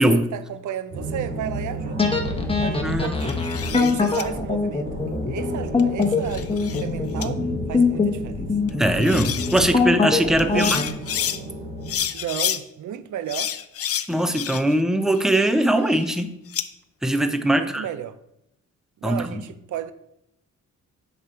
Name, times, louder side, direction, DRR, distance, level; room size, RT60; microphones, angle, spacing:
voice 1, 0.0-2.1 2.6-3.4 3.7-8.5 10.4-10.7 12.1-13.5 17.5-18.2 19.0-19.9, right 10 dB, 85° right, 0.5 m, -33 dB
sound 1, 0.9-12.0, right 1 dB, 45° right, 2.6 m, -33 dB
sound 2, 2.0-10.9, left 4 dB, 20° left, 1.0 m, -23 dB
voice 2, 2.8-3.2 8.8-10.8 14.1-16.3 17.0-17.9 19.0-19.4, right 1 dB, ahead, 0.5 m, -21 dB
sound 3, 3.2-4.2 5.8-6.9 7.2-7.3 8.7-8.8 9.0-9.6 10.4-11.4 11.9-12.6 13.3-14.8 15.2-16.7, left 9 dB, 55° left, 0.5 m, -29 dB
6.6 x 5.3 x 4.3 m
cardioid pair, 95°, 29 cm